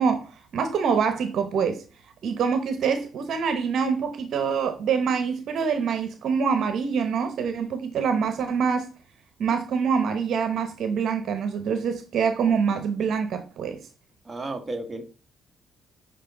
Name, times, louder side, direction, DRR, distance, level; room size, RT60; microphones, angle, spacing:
voice 1, 0.0-1.8 2.2-8.9 9.4-13.8, right 6 dB, 65° right, 1.1 m, -25 dB
voice 2, 14.3-15.0, right 2 dB, 25° right, 1.8 m, -32 dB
8.3 x 5.6 x 3.9 m
cardioid pair, 90°, 0 cm